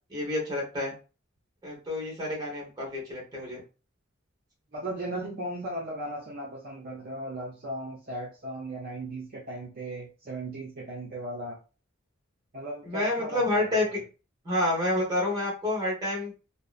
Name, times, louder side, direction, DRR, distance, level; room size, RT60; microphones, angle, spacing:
voice 1, 0.1-0.9 1.6-3.6 12.8-14.0 14.4-16.3, left 1 dB, 20° right, -4 dB, 1.1 m, -29 dB
voice 2, 4.7-11.6 12.5-13.7, right 1 dB, 45° right, -4 dB, 0.6 m, -37 dB
2.8 x 2.0 x 2.4 m, 0.33 s
head